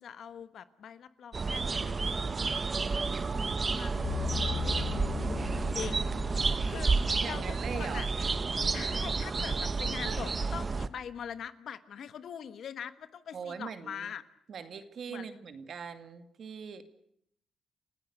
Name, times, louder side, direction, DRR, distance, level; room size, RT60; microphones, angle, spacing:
voice 1, 0.0-2.6 3.0-6.1 6.4-8.1 8.7-14.2 15.1-15.3, left 8 dB, 65° left, 12 dB, 1.4 m, -43 dB
sound 1, 1.3-10.9, right 4 dB, 30° right, 1.1 m, -31 dB
sound 2, 2.7-9.9, right 2 dB, 10° right, 3.0 m, -52 dB
sound 3, 4.0-9.2, left 5 dB, 85° left, 2.2 m, -39 dB
voice 2, 7.2-8.0 10.0-10.3 13.3-14.1 14.5-16.8, right 6 dB, 55° right, 9 dB, 2.2 m, -41 dB
29.5 x 16.0 x 8.1 m, 0.72 s
cardioid pair, 115°, 0 cm